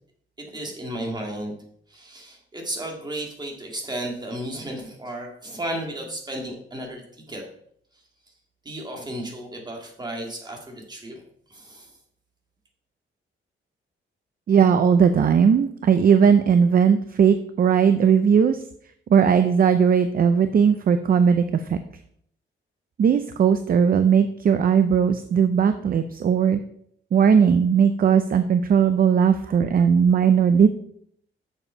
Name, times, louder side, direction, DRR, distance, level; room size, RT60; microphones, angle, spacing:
voice 1, 0.4-1.5 1.9-7.0 7.3-7.4 8.7-11.2 11.5-11.9, right 1 dB, 20° right, 1 dB, 1.9 m, -33 dB
voice 2, 14.5-18.6 19.1-21.8 23.0-26.6 27.1-30.7, right 7 dB, 45° right, 10 dB, 0.5 m, -18 dB
7.1 x 7.1 x 5.4 m, 0.67 s
wide cardioid pair, 165°, 21 cm